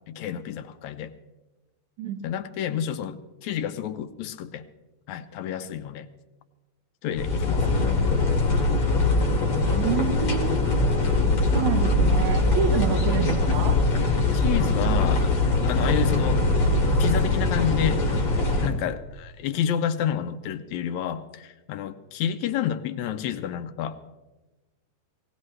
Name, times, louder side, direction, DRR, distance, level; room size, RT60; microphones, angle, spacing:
voice 1, 0.1-1.1 2.2-4.7 5.1-6.1 7.0-7.8 14.3-15.4 15.6-16.4 17.0-18.0 18.6-24.0, left 9 dB, 80° left, 9 dB, 2.0 m, -29 dB
sound 1, 7.2-18.7, left 2 dB, 55° left, 2.5 m, -22 dB
voice 2, 9.5-10.9 11.5-13.8, right 8 dB, 80° right, 6 dB, 2.6 m, -28 dB
18.5 x 18.0 x 3.3 m, 1.1 s
omnidirectional pair, 3.3 m